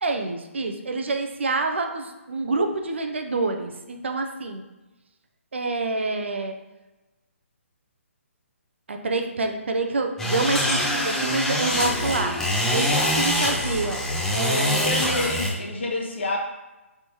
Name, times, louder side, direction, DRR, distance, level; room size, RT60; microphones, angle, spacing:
voice 1, 0.0-4.6 5.5-6.6 8.9-12.4 12.7-12.9 13.2-14.0 14.3-14.9, right 3 dB, 55° right, 4 dB, 0.5 m, -27 dB
sound 1, 10.2-15.5, left 1 dB, 5° left, 0.6 m, -24 dB
voice 2, 14.8-16.4, left 2 dB, 50° left, -1 dB, 1.1 m, -28 dB
5.1 x 3.5 x 2.8 m, 1.1 s
figure-of-eight pair, 135°, 7 cm